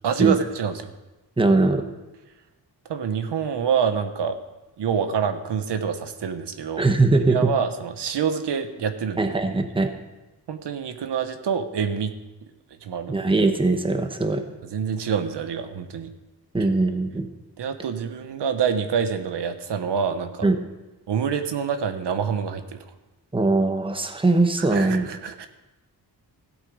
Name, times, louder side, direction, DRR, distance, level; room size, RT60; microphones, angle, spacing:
voice 1, 0.0-0.9 2.9-4.4 4.8-6.8 7.3-9.3 10.5-12.1 12.8-13.3 14.7-16.1 17.6-20.5 21.1-22.8 24.6-25.5, right 7 dB, 85° right, 8 dB, 1.1 m, -26 dB
voice 2, 1.4-1.8 6.8-7.5 9.2-9.9 13.1-14.4 16.5-17.3 20.4-20.6 23.3-25.1, right 2 dB, 15° right, 6 dB, 1.1 m, -21 dB
16.0 x 8.3 x 5.3 m, 1.1 s
wide cardioid pair, 125°, 40 cm